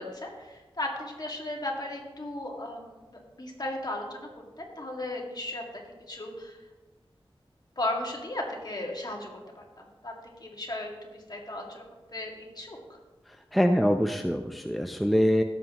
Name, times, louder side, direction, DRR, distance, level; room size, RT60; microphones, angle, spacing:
voice 1, 0.0-4.3 4.6-5.6 6.1-6.6 7.8-9.3 9.6-10.1 10.4-11.8 12.1-12.8, left 1 dB, 45° left, 0 dB, 2.1 m, -35 dB
voice 2, 13.3-15.4, equal, ahead, 5 dB, 0.6 m, -24 dB
17.0 x 7.4 x 3.0 m, 1.2 s
wide cardioid pair, 60°, 10 cm